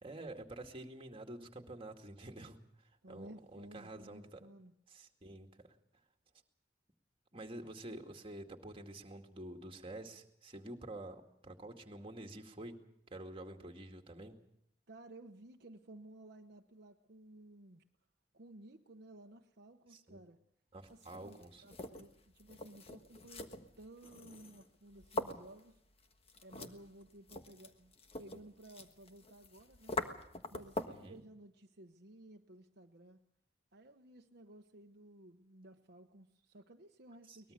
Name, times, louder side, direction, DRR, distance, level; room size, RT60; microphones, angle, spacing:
voice 1, 0.0-2.6 3.1-4.4 4.9-5.5 7.3-12.8 13.1-14.4 20.1-20.2 20.7-21.6 30.9-31.2 37.3-37.5, right 1 dB, 30° right, 3 dB, 2.2 m, -48 dB
voice 2, 3.0-4.7 14.9-17.8 18.3-20.4 20.9-25.8 26.4-30.0 30.5-33.2 33.7-37.5, right 1 dB, 60° right, 3 dB, 1.1 m, -56 dB
sound 1, 20.9-31.1, left 2 dB, 35° left, 1.4 m, -45 dB
23.0 x 20.0 x 6.7 m, 0.73 s
head